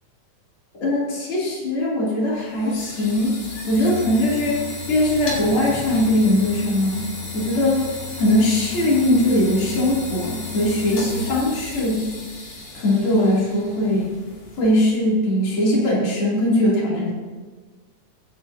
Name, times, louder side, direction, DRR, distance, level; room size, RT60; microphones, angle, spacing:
voice 1, 0.8-3.3 3.7-7.1 7.3-7.8 8.2-12.0 12.7-14.1 14.6-17.1, left 1 dB, 45° left, -6 dB, 3.9 m, -20 dB
sound 1, 2.2-15.0, left 3 dB, 80° left, 4.2 m, -34 dB
23.0 x 9.3 x 2.9 m, 1.4 s
omnidirectional pair, 3.5 m